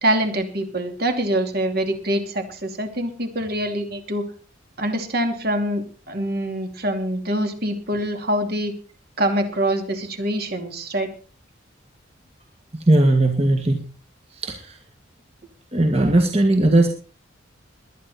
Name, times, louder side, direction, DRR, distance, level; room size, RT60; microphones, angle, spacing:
voice 1, 0.0-4.3 4.8-8.7 9.2-11.1, right 1 dB, 50° right, 6 dB, 2.7 m, -24 dB
voice 2, 12.7-13.9 14.3-14.8 15.7-16.9, right 2 dB, 30° right, 4 dB, 1.8 m, -18 dB
21.0 x 10.5 x 4.3 m, 0.38 s
head